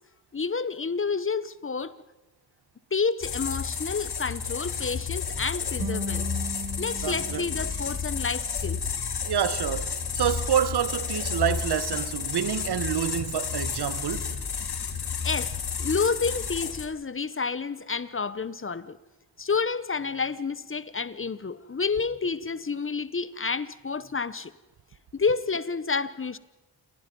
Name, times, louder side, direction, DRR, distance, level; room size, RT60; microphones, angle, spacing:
voice 1, 0.3-1.9 2.9-6.3 6.8-8.8 15.2-19.0 19.4-24.5 25.1-26.4, left 5 dB, 30° left, 1.0 m, -29 dB
sound 1, 3.2-16.8, left 6 dB, 70° left, 2.9 m, -31 dB
sound 2, 5.8-8.9, right 2 dB, 55° right, 7.7 m, -38 dB
voice 2, 7.0-7.5 9.2-9.9 10.1-14.3, right 9 dB, 75° right, 1.2 m, -27 dB
28.5 x 22.0 x 5.4 m
cardioid pair, 75°, 40 cm